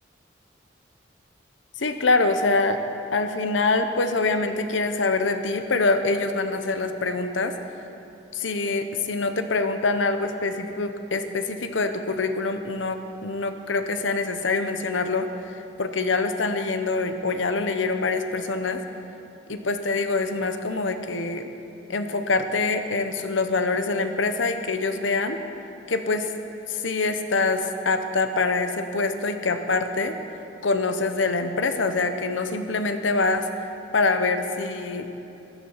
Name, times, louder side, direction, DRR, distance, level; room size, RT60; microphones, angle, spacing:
voice 1, 1.8-2.8 3.1-7.5 8.3-15.3 15.8-18.8 19.5-21.5 21.9-25.4 25.9-26.3 26.7-30.2 30.6-33.5 33.9-35.1, left 3 dB, 85° left, 8 dB, 0.9 m, -25 dB
15.5 x 10.5 x 5.7 m, 2.8 s
head